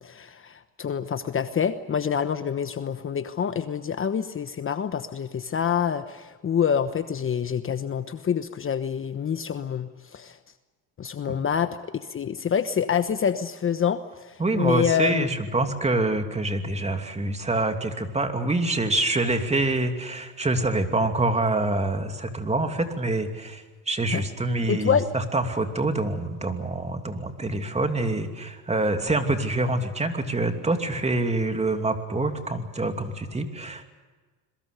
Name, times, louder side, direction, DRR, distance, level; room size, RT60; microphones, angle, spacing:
voice 1, 0.0-10.4 11.0-11.8 12.1-15.3 24.1-24.2 24.7-25.0, left 7 dB, 30° left, 10 dB, 1.1 m, -26 dB
voice 2, 14.4-33.8, right 2 dB, 15° right, 6 dB, 2.8 m, -26 dB
27.0 x 22.5 x 6.8 m, 1.3 s
supercardioid pair, 100°, 39 cm